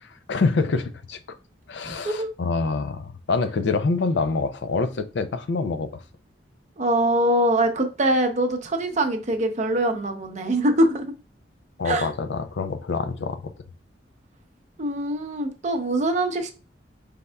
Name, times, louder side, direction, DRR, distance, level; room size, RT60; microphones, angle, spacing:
voice 1, 0.3-1.2 1.7-6.0 11.8-13.5, left 4 dB, 70° left, 0.4 m, -26 dB
voice 2, 1.8-2.3 6.8-11.1 11.8-12.1 14.8-16.5, right 1 dB, 40° right, 0.6 m, -23 dB
5.3 x 3.5 x 2.2 m
head